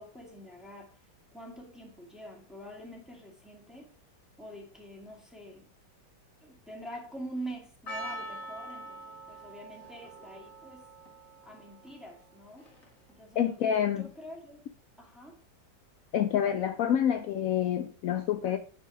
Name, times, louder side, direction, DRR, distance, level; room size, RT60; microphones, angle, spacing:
voice 1, 0.0-3.9 4.4-5.7 6.4-10.9 11.4-12.7 13.1-14.6 15.0-15.4, right 1 dB, ahead, 2.1 m, -45 dB
Percussion, 7.9-13.1, right 1 dB, 45° left, 2.3 m, -44 dB
voice 2, 13.4-14.1 16.1-18.6, left 9 dB, 75° left, 0.8 m, -27 dB
9.9 x 4.5 x 4.9 m
omnidirectional pair, 2.1 m